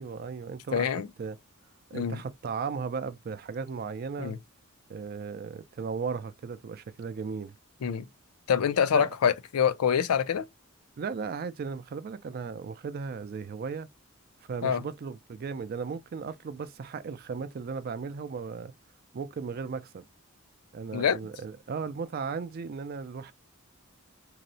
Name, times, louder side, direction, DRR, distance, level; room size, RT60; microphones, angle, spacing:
voice 1, 0.0-1.4 1.9-4.3 4.9-7.5 8.9-9.1 11.0-13.9 14.5-18.7 19.1-20.0 20.7-23.3, right 5 dB, 45° right, 0.3 m, -36 dB
voice 2, 0.7-1.1 1.9-2.2 4.2-4.4 7.8-8.1 8.5-10.4 14.6-14.8 20.9-21.2, left 7 dB, 85° left, 0.4 m, -25 dB
2.7 x 2.0 x 2.6 m
head